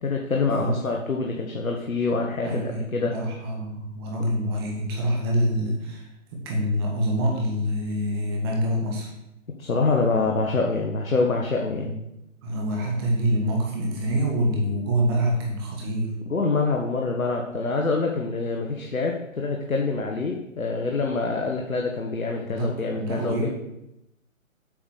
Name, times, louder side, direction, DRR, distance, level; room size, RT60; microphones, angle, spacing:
voice 1, 0.0-3.1 9.6-11.9 16.3-23.5, left 3 dB, 80° left, 1 dB, 1.5 m, -25 dB
voice 2, 2.4-2.8 3.1-6.1 6.3-9.1 11.8-12.0 12.4-16.1 22.4-23.5, equal, 20° right, -1 dB, 1.7 m, -26 dB
8.5 x 5.4 x 6.5 m, 0.87 s
figure-of-eight pair, 155°, 41 cm